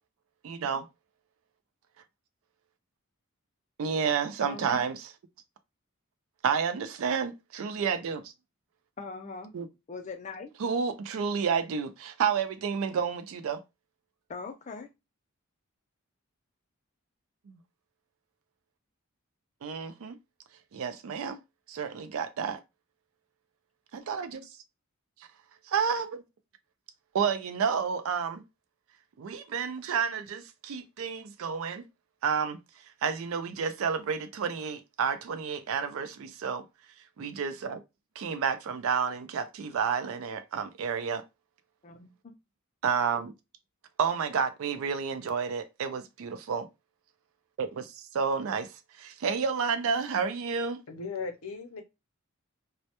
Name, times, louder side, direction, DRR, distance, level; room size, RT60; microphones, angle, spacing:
voice 1, 0.4-0.8 3.8-5.1 6.4-8.3 9.5-9.7 10.6-13.6 17.5-17.6 19.6-20.2 20.7-21.4 21.7-22.6 23.9-24.4 25.7-26.2 27.1-28.4 29.2-31.8 32.2-32.6 33.0-36.6 37.2-37.8 38.2-41.2 42.8-43.3 44.0-46.7 47.6-50.8, right 6 dB, 70° right, 0.4 m, -30 dB
voice 2, 4.4-4.8 9.0-9.5 9.9-10.5 14.3-14.9 41.8-42.3, left 4 dB, 35° left, 0.4 m, -41 dB
voice 3, 50.9-51.8, left 4 dB, 80° left, 0.6 m, -37 dB
2.1 x 2.1 x 2.8 m
head